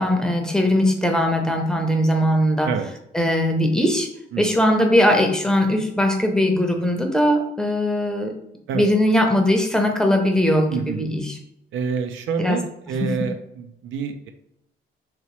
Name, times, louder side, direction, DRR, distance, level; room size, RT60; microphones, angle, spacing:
voice 1, 0.0-2.7 3.1-4.1 4.4-8.3 8.7-11.4 12.4-12.6 13.0-13.1, left 1 dB, 5° left, 2 dB, 0.6 m, -20 dB
voice 2, 10.7-11.1 11.7-14.3, right 5 dB, 80° right, 6 dB, 0.4 m, -27 dB
2.9 x 2.9 x 3.0 m, 0.79 s
cardioid pair, 90°, 20 cm